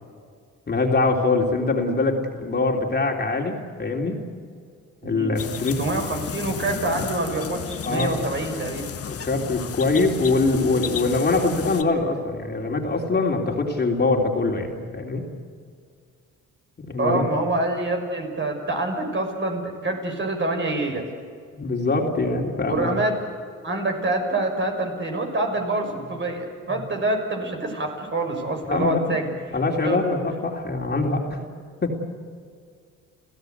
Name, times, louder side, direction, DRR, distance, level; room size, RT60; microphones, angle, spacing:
voice 1, 0.7-4.2 5.0-5.8 7.8-8.1 9.1-15.2 16.8-17.2 21.5-22.9 26.7-26.8 28.7-29.0 29.5-31.4 31.8-32.0, left 3 dB, 35° left, 1 dB, 3.4 m, -23 dB
voice 2, 5.0-8.8 17.0-21.0 22.7-23.2 23.6-29.3 29.8-30.0, right 2 dB, 40° right, 3 dB, 6.1 m, -26 dB
sound 1, 5.4-11.8, left 7 dB, 50° left, 1.6 m, -33 dB
30.0 x 15.5 x 8.2 m, 2.1 s
cardioid pair, 90°, 30 cm